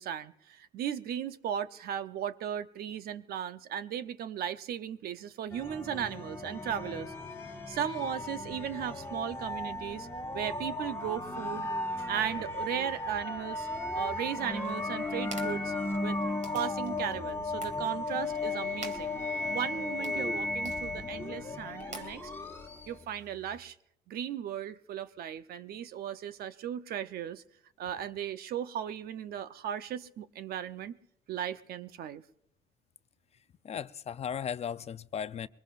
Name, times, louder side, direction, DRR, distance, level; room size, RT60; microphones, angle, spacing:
voice 1, 0.0-7.1 7.7-10.1 10.3-11.7 12.0-13.7 13.9-15.7 16.0-16.2 16.5-19.2 19.5-22.3 22.9-23.7 24.1-27.4 27.8-31.0 31.3-32.2, right 9 dB, 65° right, 0.8 m, -36 dB
sound 1, 5.5-23.0, left 2 dB, 15° left, 1.6 m, -35 dB
sound 2, 14.6-23.6, right 3 dB, 45° right, 2.7 m, -51 dB
voice 2, 33.6-35.5, left 8 dB, 40° left, 0.6 m, -36 dB
23.0 x 20.5 x 2.5 m
cardioid pair, 110°, 17 cm